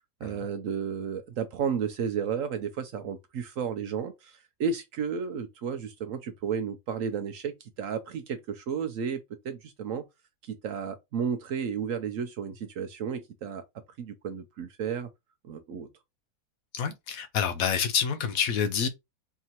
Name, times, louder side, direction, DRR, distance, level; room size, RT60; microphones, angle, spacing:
voice 1, 0.2-4.3 4.6-7.5 7.8-9.2 9.4-10.0 10.6-13.6 14.0-15.1 15.5-15.9, right 7 dB, 65° right, 0.9 m, -32 dB
voice 2, 16.7-18.9, left 7 dB, 70° left, 0.9 m, -28 dB
4.4 x 2.9 x 2.8 m
omnidirectional pair, 1.7 m